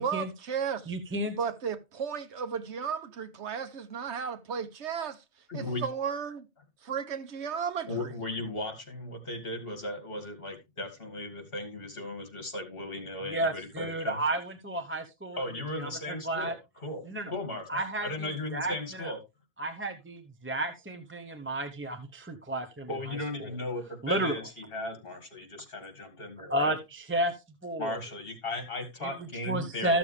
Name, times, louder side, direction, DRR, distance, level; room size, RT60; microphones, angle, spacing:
voice 1, 0.0-0.9 1.4-5.2 5.5-6.5 6.8-8.1, right 7 dB, 70° right, 1.3 m, -34 dB
voice 2, 0.9-1.4 13.3-15.4 15.7-16.5 17.0-17.3 17.7-19.1 19.6-23.5 24.0-24.3 26.5-28.0 29.0-30.0, right 1 dB, 10° right, 0.7 m, -32 dB
voice 3, 5.5-5.8 7.9-14.2 15.4-17.0 17.3-17.6 18.0-19.2 22.9-24.4 24.7-26.7 27.8-30.0, left 1 dB, 50° left, 2.6 m, -36 dB
13.5 x 7.0 x 3.3 m
omnidirectional pair, 1.2 m